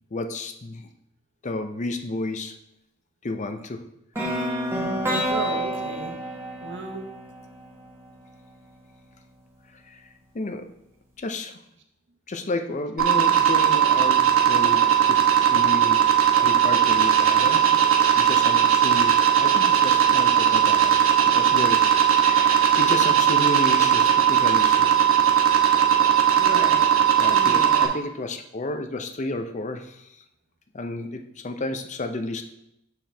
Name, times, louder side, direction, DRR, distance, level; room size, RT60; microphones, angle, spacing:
voice 1, 0.1-0.9 1.4-2.6 3.2-3.8 9.8-10.7 11.2-11.6 12.3-16.0 16.3-17.7 18.2-21.0 21.3-25.1 27.2-30.2 30.7-32.4, left 2 dB, 35° left, 7 dB, 0.6 m, -32 dB
sound 1, 4.2-8.1, equal, 10° right, 1.4 m, -29 dB
voice 2, 5.3-6.1 6.6-7.1 26.3-26.9 27.3-27.9, right 3 dB, 60° right, 3 dB, 0.9 m, -33 dB
sound 2, 13.0-27.9, right 9 dB, 80° right, 1.1 m, -18 dB
7.5 x 4.6 x 3.4 m, 0.81 s
head